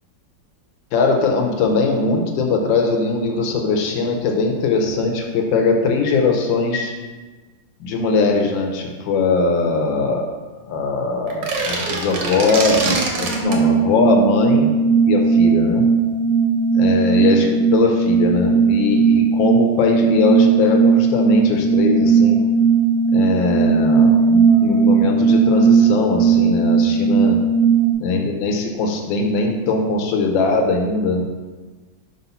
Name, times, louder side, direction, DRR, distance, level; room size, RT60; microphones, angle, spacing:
voice 1, 0.9-6.9 7.8-10.2 10.6-14.7 15.1-15.8 16.7-22.4 23.1-27.4 28.0-31.2, left 3 dB, 75° left, 2 dB, 1.5 m, -20 dB
sound 1, 11.3-13.6, right 3 dB, 75° right, 1.6 m, -24 dB
sound 2, 13.4-27.9, right 5 dB, 35° left, 0.7 m, -16 dB
4.4 x 4.1 x 5.5 m, 1.3 s
omnidirectional pair, 2.1 m